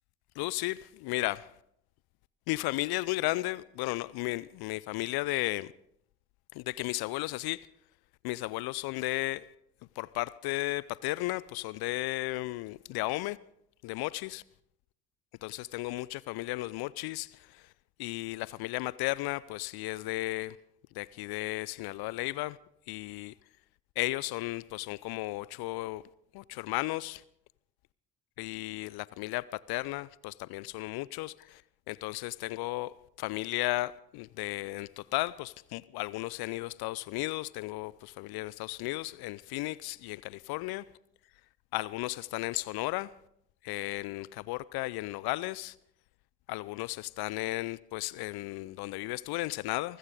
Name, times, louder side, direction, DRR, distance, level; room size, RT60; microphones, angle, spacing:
voice 1, 0.4-1.5 2.5-5.7 6.5-7.7 8.2-9.5 10.0-13.4 13.8-14.4 15.4-17.7 18.0-20.6 20.9-22.6 22.9-23.3 24.0-26.0 26.3-27.2 28.4-31.6 31.9-40.8 41.7-43.1 43.6-45.8 46.5-50.0, left 19 dB, 55° left, 0.6 m, -34 dB
24.0 x 14.5 x 3.8 m
figure-of-eight pair, 50°, 46 cm